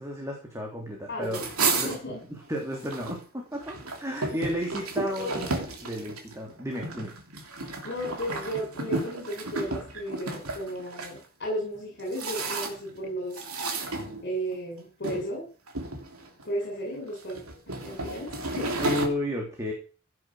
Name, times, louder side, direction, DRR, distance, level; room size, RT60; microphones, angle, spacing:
voice 1, 0.0-1.4 1.8-2.0 2.3-5.5 5.8-7.1 18.6-19.7, equal, 15° right, 0 dB, 3.2 m, -33 dB
voice 2, 1.1-1.5 1.7-2.2 5.2-5.5 7.8-13.4 14.2-15.4 16.4-17.4 17.8-18.9, equal, 50° left, 0 dB, 6.7 m, -34 dB
sound 1, 1.2-3.2 3.5-11.1 11.7-13.0 13.3-14.6 15.0-15.3 15.7-16.4 17.1-19.1, right 3 dB, 80° right, 3.1 m, -32 dB
16.5 x 7.9 x 6.3 m, 0.38 s
head